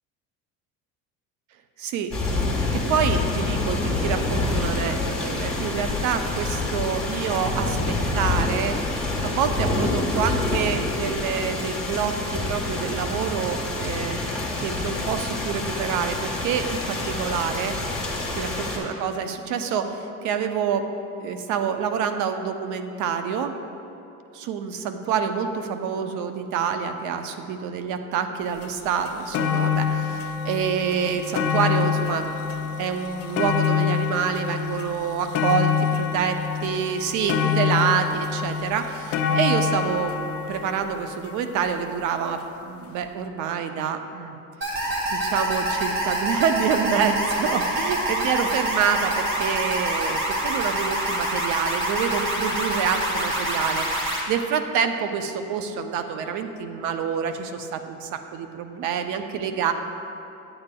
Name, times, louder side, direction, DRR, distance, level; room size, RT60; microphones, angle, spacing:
voice 1, 1.8-2.1 2.7-8.8 9.2-14.2 14.6-17.8 18.4-19.9 20.2-20.9 21.2-23.5 24.3-32.3 32.6-40.1 40.5-44.4 45.1-59.7, right 7 dB, 70° right, 7 dB, 0.6 m, -27 dB
sound 1, 2.1-18.8, left 2 dB, 5° left, 1.4 m, -27 dB
sound 2, 28.6-28.7 29.0-42.2 43.0-43.1, left 7 dB, 50° left, 0.5 m, -26 dB
sound 3, 44.6-54.2, right 1 dB, 40° right, 1.6 m, -26 dB
8.7 x 8.4 x 2.2 m, 2.8 s
cardioid pair, 115°, 31 cm